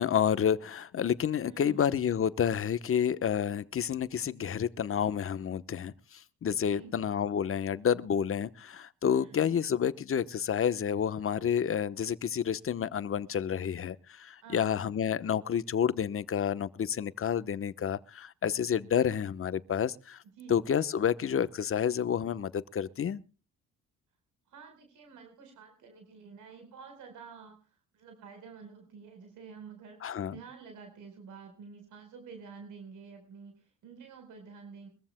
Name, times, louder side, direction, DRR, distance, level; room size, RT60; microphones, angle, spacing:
voice 1, 0.0-20.2 20.5-23.2 30.0-30.3, left 8 dB, 45° left, 1.0 m, -29 dB
voice 2, 1.5-1.8 6.6-6.9 9.0-9.6 14.4-14.7 20.4-20.7 24.5-34.9, right 5 dB, 85° right, 4.3 m, -49 dB
23.5 x 14.5 x 2.2 m
cardioid pair, 90°, 30 cm